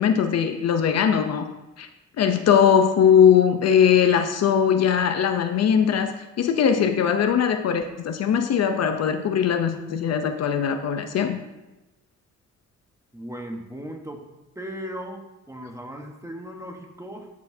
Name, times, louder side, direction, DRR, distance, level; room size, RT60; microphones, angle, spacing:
voice 1, 0.0-1.5 1.8-1.9 2.2-11.4, left 8 dB, 60° left, 7 dB, 0.7 m, -20 dB
voice 2, 13.1-14.2 14.5-17.3, equal, 10° right, 3 dB, 1.1 m, -37 dB
13.0 x 4.4 x 2.7 m, 1.0 s
cardioid pair, 90°, 30 cm